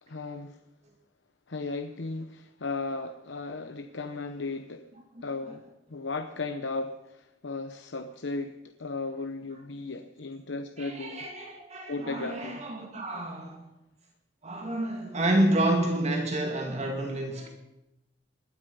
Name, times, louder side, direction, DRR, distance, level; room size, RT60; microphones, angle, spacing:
voice 1, 0.0-0.6 1.5-4.9 5.2-11.3 11.9-12.6, left 3 dB, 75° left, 0.9 m, -36 dB
voice 2, 10.8-13.6 14.4-17.5, right 1 dB, 40° right, 2.4 m, -29 dB
20.5 x 12.5 x 5.5 m
head